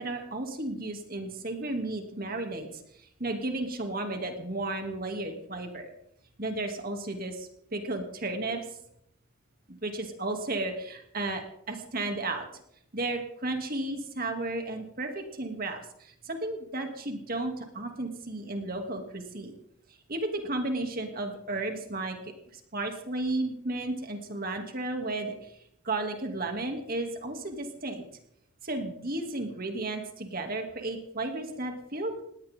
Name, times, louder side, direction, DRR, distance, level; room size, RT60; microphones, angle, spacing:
voice 1, 0.0-5.9 6.4-8.6 9.8-12.4 12.9-19.5 20.1-25.5 25.8-28.0 28.6-32.2, right 2 dB, 40° right, 4 dB, 2.8 m, -33 dB
21.0 x 17.5 x 3.8 m, 0.72 s
head